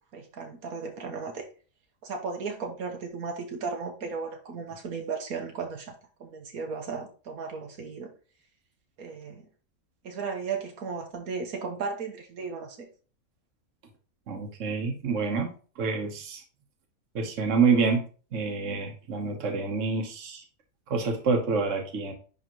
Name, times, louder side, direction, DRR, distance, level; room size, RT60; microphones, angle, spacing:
voice 1, 0.1-1.5 2.0-5.9 6.2-8.1 9.0-9.4 10.0-12.9, right 5 dB, 85° right, 3 dB, 1.5 m, -35 dB
voice 2, 14.3-16.4 17.1-18.0 18.3-20.4 20.9-22.1, right 5 dB, 60° right, 4 dB, 1.4 m, -27 dB
10.5 x 3.6 x 3.0 m, 0.37 s
omnidirectional pair, 1.5 m